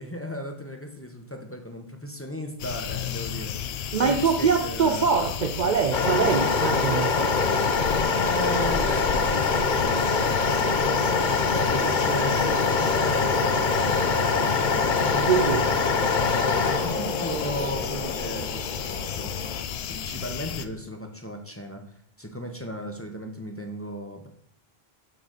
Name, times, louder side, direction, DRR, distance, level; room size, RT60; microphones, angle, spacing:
voice 1, 0.0-3.6 4.0-5.1 8.2-11.1 11.5-14.5 16.7-19.3 19.9-21.8 22.2-24.3, equal, 15° left, 0.8 m, -35 dB
sound 1, 2.6-20.7, left 8 dB, 80° left, 0.8 m, -33 dB
voice 2, 3.9-7.2 15.1-15.7, right 6 dB, 55° right, 0.6 m, -23 dB
sound 2, 5.9-19.6, left 4 dB, 50° left, 0.9 m, -24 dB
7.5 x 4.0 x 6.4 m
omnidirectional pair, 1.1 m